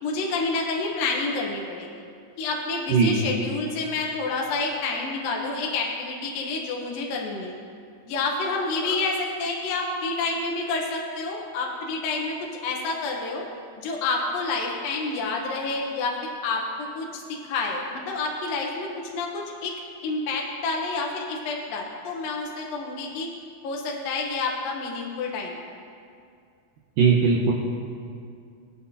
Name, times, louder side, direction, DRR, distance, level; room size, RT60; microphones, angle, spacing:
voice 1, 0.0-1.9 2.4-7.5 8.1-13.4 13.8-19.7 20.0-23.3 23.6-25.6, left 3 dB, 70° left, -1 dB, 2.7 m, -29 dB
voice 2, 2.9-3.2 27.0-27.5, right 5 dB, 70° right, -4 dB, 2.6 m, -19 dB
24.5 x 8.3 x 2.8 m, 2.3 s
omnidirectional pair, 4.4 m